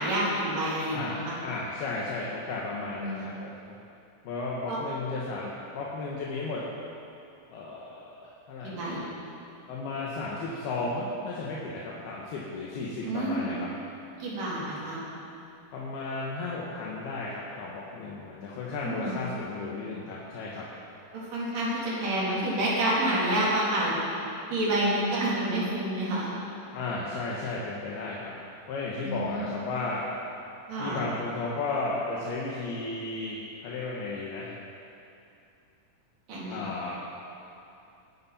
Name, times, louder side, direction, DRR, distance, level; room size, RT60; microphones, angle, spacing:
voice 1, 0.0-1.3 2.9-3.2 4.7-4.8 8.6-9.0 13.0-13.6 14.2-15.0 18.8-19.2 21.1-24.0 24.5-26.3 29.0-29.5 30.7-31.0 36.3-36.6, right 1 dB, 60° right, -7 dB, 5.0 m, -28 dB
voice 2, 0.9-3.7 4.2-6.6 7.5-8.8 9.7-13.7 15.7-20.6 26.7-28.3 28.7-30.0 30.8-34.5 36.5-37.0, left 3 dB, 85° left, -5 dB, 3.3 m, -34 dB
21.0 x 10.5 x 4.3 m, 2.7 s
omnidirectional pair, 4.4 m